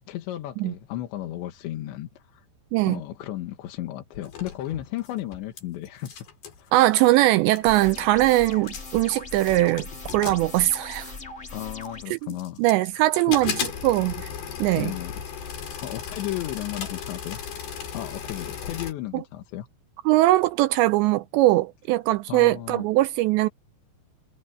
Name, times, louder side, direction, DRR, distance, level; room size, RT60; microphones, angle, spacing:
voice 1, 0.0-2.5 2.8-6.3 6.6-6.7 11.5-12.6 12.9-13.4 14.8-15.2 15.8-17.4 17.9-19.7 22.3-22.9, left 14 dB, 75° left, 3.6 m, -34 dB
sound 1, 4.1-5.6 5.9-6.6 7.3-7.4 7.5-8.1 8.5-9.0 9.5-11.2 11.8-12.9 13.3-18.9, left 7 dB, 55° left, 5.2 m, -35 dB
voice 2, 6.7-9.9 10.1-11.1 12.1-12.2 12.6-14.3 14.6-14.9 20.1-23.5, right 17 dB, 80° right, 2.6 m, -21 dB
sound 2, 7.7-12.0, left 3 dB, 30° left, 1.3 m, -39 dB
omnidirectional pair, 5.5 m